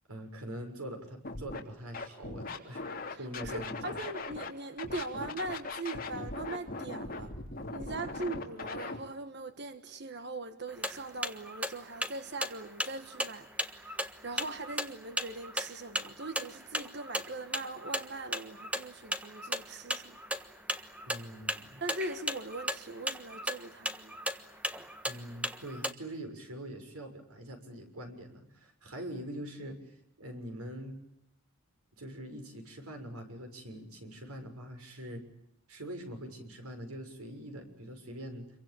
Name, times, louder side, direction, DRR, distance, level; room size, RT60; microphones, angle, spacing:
voice 1, 0.1-2.8 3.2-3.8 21.1-21.8 25.0-31.0 32.0-35.2 35.7-38.5, right 1 dB, 90° right, 6.7 m, -43 dB
Scratching (performance technique), 1.2-1.6 1.9-4.5 4.8-9.0, left 3 dB, 40° left, 3.3 m, -39 dB
voice 2, 3.4-7.3 7.7-20.2 21.8-24.2, right 2 dB, 50° right, 1.4 m, -41 dB
sound 1, 10.7-25.9, right 1 dB, 5° right, 1.3 m, -36 dB
28.0 x 23.5 x 8.7 m
head